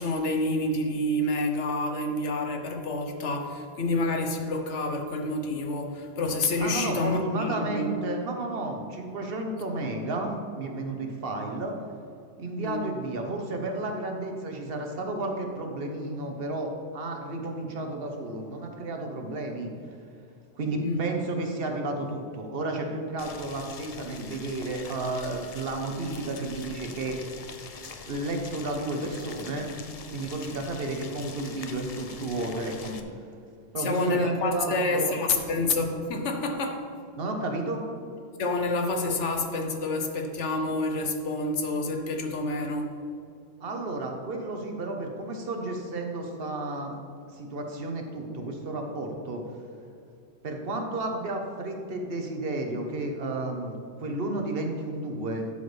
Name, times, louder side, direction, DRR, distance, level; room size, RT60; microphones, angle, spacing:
voice 1, 0.0-7.9 12.6-12.9 20.7-21.0 33.8-36.9 38.4-43.0, left 2 dB, 80° left, 4 dB, 1.2 m, -28 dB
voice 2, 6.6-11.7 12.4-19.7 20.5-27.2 28.1-29.7 30.1-33.0 33.7-35.1 37.2-37.8 43.6-46.9 47.3-49.4 50.4-53.7 54.0-55.5, right 2 dB, 55° right, 3 dB, 1.3 m, -32 dB
Boiling, 23.2-33.0, left 5 dB, 45° left, 0.5 m, -44 dB
12.0 x 7.0 x 3.4 m, 2.5 s
omnidirectional pair, 1.2 m